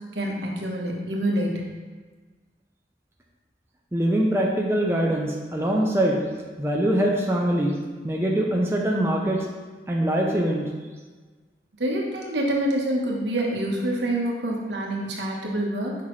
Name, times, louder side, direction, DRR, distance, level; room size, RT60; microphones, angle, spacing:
voice 1, 0.1-1.6 11.8-16.0, right 1 dB, 85° right, -1 dB, 1.2 m, -26 dB
voice 2, 3.9-6.2 6.6-7.8 8.0-9.5 9.9-10.7, right 1 dB, 15° right, -1 dB, 0.6 m, -23 dB
6.1 x 5.7 x 3.2 m, 1.4 s
head